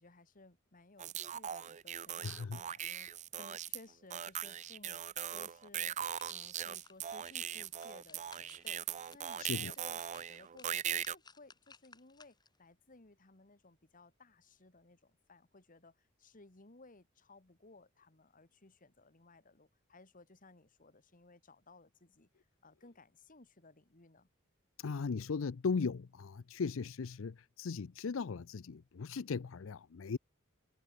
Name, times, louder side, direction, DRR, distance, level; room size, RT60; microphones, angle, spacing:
voice 1, 0.0-6.0 6.3-8.8 9.1-24.3, left 2 dB, 40° left, 2.0 m, -60 dB
sound 1, 1.0-3.8 4.1-11.1, right 10 dB, 35° right, 0.4 m, -40 dB
voice 2, 2.2-2.6 9.4-9.7 24.8-30.2, left 5 dB, 75° left, 0.5 m, -38 dB
sound 2, 5.9-12.6 13.0-13.1, left 4 dB, 20° left, 6.1 m, -62 dB
head